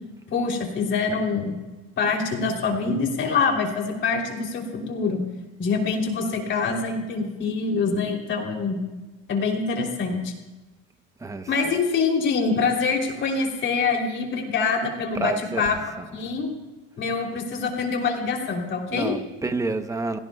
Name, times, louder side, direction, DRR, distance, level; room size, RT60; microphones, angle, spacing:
voice 1, 0.3-1.5 2.0-5.2 5.6-8.8 9.3-10.3 11.5-15.8 16.1-16.5 17.0-19.2, left 4 dB, 40° left, 2 dB, 3.2 m, -25 dB
voice 2, 11.2-11.7 15.1-16.2 18.9-20.2, right 3 dB, 10° right, 9 dB, 0.8 m, -30 dB
29.0 x 17.5 x 2.3 m, 1.1 s
cardioid pair, 150°, 30 cm